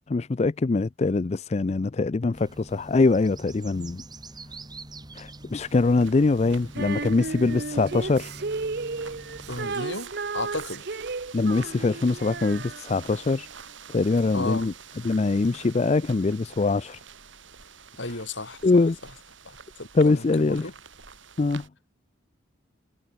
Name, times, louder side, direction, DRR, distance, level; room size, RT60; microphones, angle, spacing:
voice 1, 0.1-4.0 5.1-8.3 11.3-13.5 13.9-14.7 15.0-17.0 18.6-19.0 19.9-20.7 21.4-21.7, left 3 dB, 35° left, 0.4 m, -23 dB
sound 1, 2.3-9.8, right 2 dB, 20° right, 5.2 m, -45 dB
sound 2, 5.6-21.7, right 6 dB, 75° right, 6.0 m, -47 dB
Female singing, 6.7-13.2, right 4 dB, 55° right, 0.8 m, -34 dB
voice 2, 9.5-10.9 14.3-14.7 18.0-18.6 19.5-20.7, left 2 dB, 70° left, 5.6 m, -34 dB
head